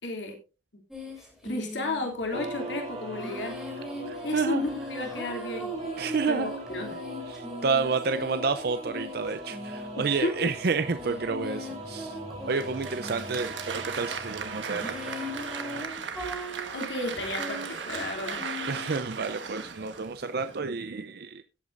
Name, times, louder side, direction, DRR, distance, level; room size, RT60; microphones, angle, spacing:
voice 1, 0.0-0.4 1.4-3.5 4.2-5.7 6.3-7.0 9.9-10.5 16.7-18.5, left 2 dB, 75° left, 2.8 m, -33 dB
sound 1, 0.9-2.2 3.2-19.1, left 1 dB, ahead, 3.2 m, -40 dB
sound 2, 2.3-15.8, right 1 dB, 35° right, 3.4 m, -40 dB
voice 2, 4.1-4.6 6.0-6.5 7.3-12.2 12.5-15.1 18.7-21.4, right 4 dB, 55° right, 0.5 m, -30 dB
Applause, 12.5-20.6, right 6 dB, 85° right, 1.4 m, -37 dB
17.0 x 8.4 x 2.5 m
head